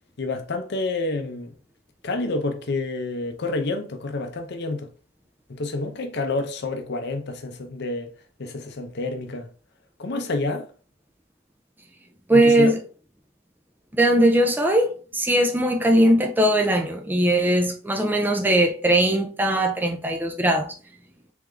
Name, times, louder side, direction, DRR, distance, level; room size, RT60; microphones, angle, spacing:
voice 1, 0.2-1.5 2.0-4.9 5.5-8.1 8.4-9.5 10.0-10.7 12.3-12.8, left 2 dB, 55° left, 0.6 m, -28 dB
voice 2, 12.3-12.8 14.0-20.7, right 1 dB, 10° right, 0.4 m, -20 dB
3.7 x 3.4 x 3.2 m
head